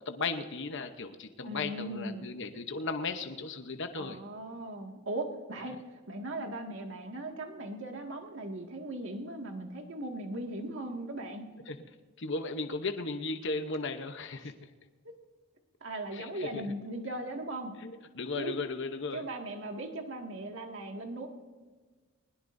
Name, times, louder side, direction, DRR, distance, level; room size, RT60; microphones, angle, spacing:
voice 1, 0.0-4.2 11.7-11.8 12.2-14.5 16.1-16.6 17.8-19.2, left 3 dB, 60° left, 7 dB, 0.9 m, -36 dB
voice 2, 1.5-2.3 4.0-5.8 6.1-11.4 14.4-14.5 15.0-15.1 15.8-17.7 18.4-18.5 19.1-21.3, right 1 dB, 60° right, 3 dB, 2.0 m, -38 dB
21.0 x 20.5 x 2.7 m, 1.4 s
head